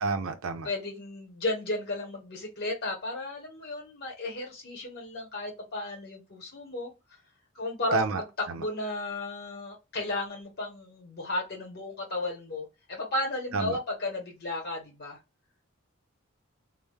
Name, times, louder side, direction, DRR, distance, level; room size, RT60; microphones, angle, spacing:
voice 1, 0.0-0.7 7.9-8.2 8.5-8.6 13.5-13.8, right 4 dB, 70° right, 0.5 m, -29 dB
voice 2, 0.6-6.9 7.5-8.3 8.6-15.2, left 2 dB, 50° left, 0.9 m, -34 dB
2.2 x 2.0 x 3.1 m
head